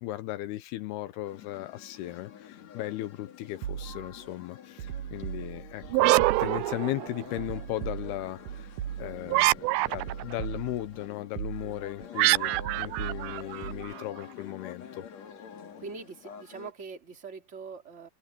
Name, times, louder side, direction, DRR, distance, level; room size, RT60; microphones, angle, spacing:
voice 1, 0.0-15.1, left 15 dB, 80° left, 2.7 m, -37 dB
sound 1, 1.3-16.7, left 8 dB, 50° left, 2.8 m, -48 dB
sound 2, 3.6-4.2 4.8-5.9 6.2-6.8 7.4-9.4 9.9-11.0 11.4-12.0 12.5-13.9, right 10 dB, 70° right, 2.1 m, -38 dB
sound 3, 5.8-7.4 9.3-10.3 12.2-14.0, right 22 dB, 90° right, 2.1 m, -25 dB
voice 2, 15.8-18.1, right 4 dB, 20° right, 2.2 m, -42 dB
omnidirectional pair, 4.7 m